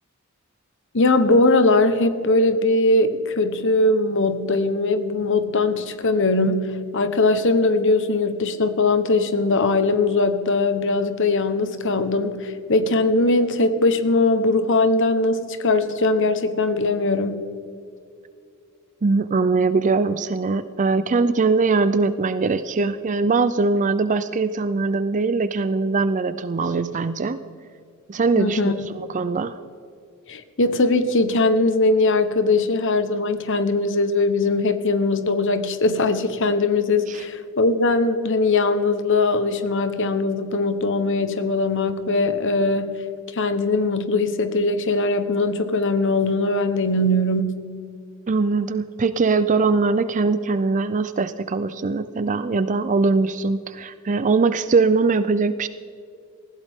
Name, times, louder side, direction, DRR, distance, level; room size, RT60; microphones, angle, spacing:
voice 1, 0.9-17.4 28.4-28.7 30.3-42.9 43.3-47.6, left 2 dB, 60° left, 10 dB, 1.2 m, -20 dB
voice 2, 19.0-27.4 28.1-29.6 37.1-37.2 48.3-55.7, right 4 dB, 35° right, 13 dB, 0.5 m, -21 dB
20.0 x 15.5 x 3.7 m, 2.4 s
head